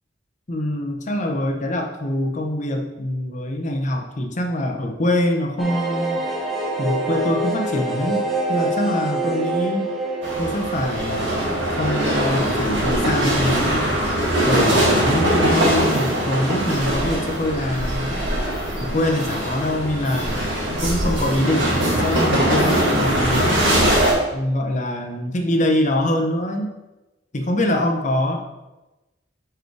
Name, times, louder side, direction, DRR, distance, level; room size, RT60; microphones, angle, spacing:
voice 1, 0.5-6.2 6.8-9.9 10.4-14.0 14.4-18.1 18.8-23.5 24.3-26.7 27.3-28.4, left 1 dB, 40° left, 3 dB, 0.8 m, -24 dB
sound 1, 5.6-13.1 13.3-13.4 13.7-13.8, right 2 dB, ahead, 0.7 m, -26 dB
sound 2, 10.2-24.1, right 1 dB, 65° right, 2.0 m, -21 dB
4.9 x 4.7 x 4.6 m, 1.0 s
head